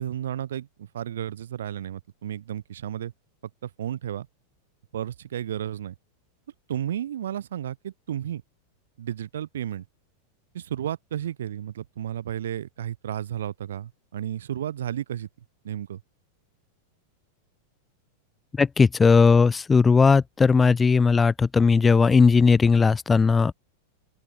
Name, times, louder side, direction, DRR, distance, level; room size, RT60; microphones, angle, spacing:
voice 1, 0.0-3.1 3.6-4.3 4.9-5.9 6.7-8.4 9.0-9.8 10.5-15.3 15.6-16.0, right 10 dB, 60° right, 3.1 m, -32 dB
voice 2, 18.6-23.5, left 5 dB, 15° left, 2.5 m, -18 dB
open air
figure-of-eight pair, 90°, 0 cm